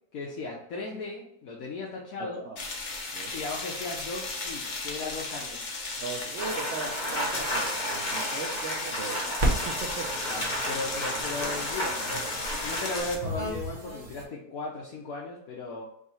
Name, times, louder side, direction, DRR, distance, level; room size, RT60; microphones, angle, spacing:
voice 1, 0.1-2.4 3.3-5.6 10.3-15.8, left 3 dB, 70° left, -3 dB, 1.1 m, -36 dB
voice 2, 2.2-2.6 3.1-3.4 6.0-10.2, right 4 dB, 65° right, -1 dB, 0.7 m, -39 dB
sound 1, 2.6-13.2, left 3 dB, 50° left, 0.6 m, -35 dB
Rain, 6.4-13.0, equal, 30° left, 1.4 m, -33 dB
sound 2, 9.4-14.2, right 1 dB, 35° right, 0.9 m, -34 dB
3.7 x 2.9 x 4.1 m, 0.72 s
omnidirectional pair, 1.7 m